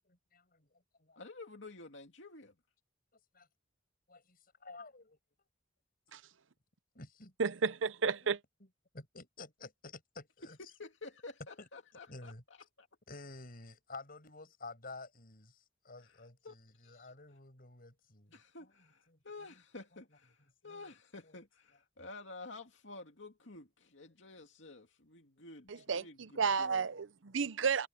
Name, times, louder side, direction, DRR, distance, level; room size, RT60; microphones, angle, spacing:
voice 1, 0.0-1.2 3.3-3.5 4.1-5.2 6.9-7.3 8.2-8.4 8.9-10.6 11.6-11.7 12.1-12.4 13.1-18.7 19.1-19.2 19.5-19.6 20.6-20.9 21.2-21.4, left 3 dB, 50° left, 7.5 m, -51 dB
voice 2, 1.2-2.5 10.6-12.3 12.8-12.9 16.0-16.5 16.8-17.1 18.3-26.9, left 3 dB, 70° left, 2.5 m, -51 dB
voice 3, 7.4-8.4 25.7-27.9, right 5 dB, 80° right, 0.7 m, -32 dB
head